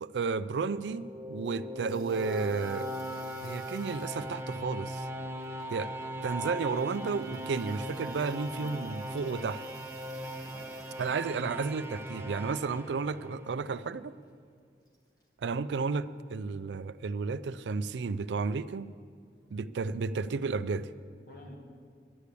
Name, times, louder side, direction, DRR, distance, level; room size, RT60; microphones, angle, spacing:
voice 1, 0.0-2.9 3.4-5.1 5.7-5.9 6.2-9.6 11.0-14.1 15.4-18.9 19.5-20.9, right 4 dB, 85° right, 14 dB, 0.4 m, -32 dB
sound 1, 0.6-13.6, equal, 15° right, 0.6 m, -39 dB
sound 2, 1.8-4.9 5.4-6.0 6.3-11.4 11.7-12.4 14.9-15.3, equal, 20° left, 1.7 m, -58 dB
voice 2, 8.6-9.2 10.4-11.1 21.2-21.6, equal, 50° left, 0 dB, 2.0 m, -52 dB
11.5 x 8.3 x 8.3 m, 2.2 s
head